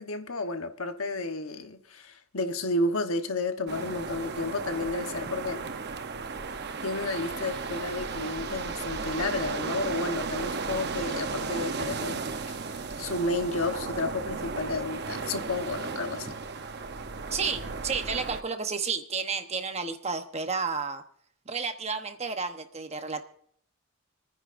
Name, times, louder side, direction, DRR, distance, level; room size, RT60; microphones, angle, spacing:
voice 1, 0.0-5.7 6.8-12.7 13.0-16.4, left 2 dB, 80° left, 1.2 m, -32 dB
sound 1, 3.7-18.4, right 4 dB, 55° right, 0.8 m, -35 dB
voice 2, 17.3-21.0 21.5-23.2, right 5 dB, 30° right, 1.0 m, -31 dB
29.0 x 10.0 x 2.6 m
head